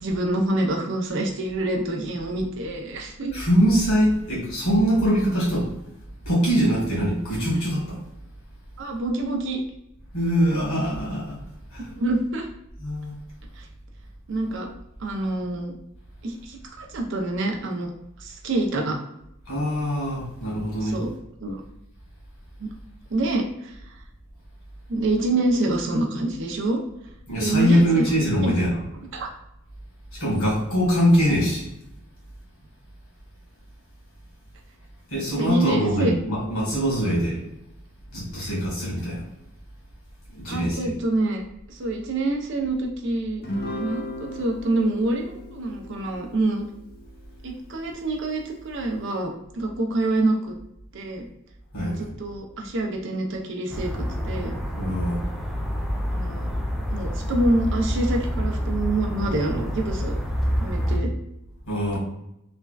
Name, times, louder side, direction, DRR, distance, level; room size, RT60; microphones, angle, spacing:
voice 1, 0.0-3.3 8.8-9.6 11.9-12.5 13.6-13.7 14.3-14.7 15.0-15.7 16.2-17.9 18.2-19.0 20.8-21.1 21.4-21.6 22.6-22.7 23.1-23.8 24.9-26.8 27.4-28.2 28.4-28.5 29.1-29.3 35.3-36.1 38.4-38.5 40.5-41.4 41.7-46.6 47.4-50.6 50.9-51.3 51.8-53.9 54.2-54.5 56.1-56.5 56.9-60.1 60.6-61.1, right 2 dB, 60° right, 2 dB, 0.5 m, -26 dB
voice 2, 3.3-5.7 6.2-8.0 10.1-11.4 11.7-11.9 12.8-13.2 19.5-21.0 27.3-28.8 30.1-31.7 35.1-37.4 38.1-39.2 40.3-40.9 51.7-52.1 54.7-55.2 61.7-62.0, equal, 85° left, -4 dB, 1.4 m, -23 dB
Guitar, 43.4-48.0, left 1 dB, 45° left, 0.6 m, -37 dB
sound 1, 53.7-61.0, equal, ahead, 0.3 m, -27 dB
3.3 x 2.2 x 2.2 m, 0.82 s
head